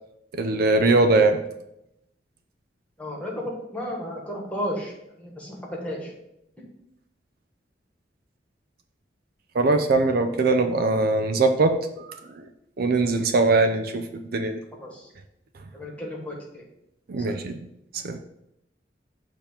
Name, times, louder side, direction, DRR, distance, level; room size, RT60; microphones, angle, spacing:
voice 1, 0.3-1.4 9.5-12.5 12.8-14.6 17.1-17.6 17.9-18.2, right 3 dB, 60° right, 7 dB, 0.4 m, -21 dB
voice 2, 3.0-4.9 5.2-6.1 14.8-15.1 15.7-16.6, equal, 10° left, -2 dB, 1.4 m, -33 dB
6.8 x 2.9 x 5.4 m, 0.82 s
head